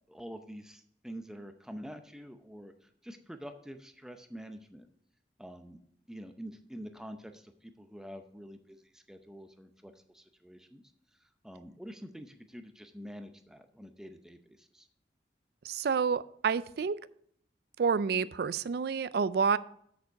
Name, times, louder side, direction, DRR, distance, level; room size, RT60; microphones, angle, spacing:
voice 1, 0.1-4.9 5.4-5.8 6.1-10.8 11.2-14.9, equal, 5° right, 7 dB, 0.6 m, -47 dB
voice 2, 15.6-16.9 17.8-19.6, right 6 dB, 60° right, 17 dB, 0.4 m, -29 dB
8.0 x 6.6 x 4.6 m, 0.67 s
head